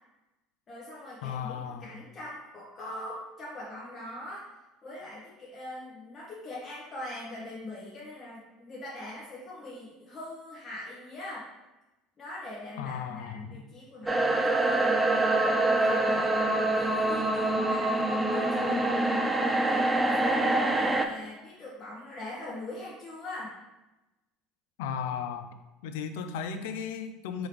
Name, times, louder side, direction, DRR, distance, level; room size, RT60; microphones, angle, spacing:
voice 1, 0.7-4.5 4.8-11.5 12.2-14.9 15.7-18.9 19.6-23.6, left 1 dB, 35° left, -6 dB, 1.0 m, -42 dB
voice 2, 1.2-1.9 12.8-13.6 24.8-25.5 25.8-27.5, left 7 dB, 80° left, 8 dB, 0.3 m, -35 dB
sound 1, 14.1-21.1, right 2 dB, 10° right, 0.4 m, -25 dB
3.7 x 2.9 x 3.2 m, 1.0 s
supercardioid pair, 90°, 0 cm